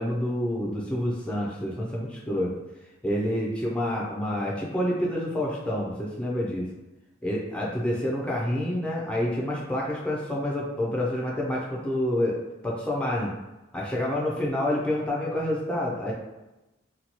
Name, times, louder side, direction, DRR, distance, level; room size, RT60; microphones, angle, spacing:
voice 1, 0.0-2.5 3.0-6.7 7.2-12.4 12.6-13.3 13.7-16.1, left 1 dB, 5° left, -4 dB, 0.4 m, -28 dB
2.7 x 2.2 x 2.9 m, 1.0 s
head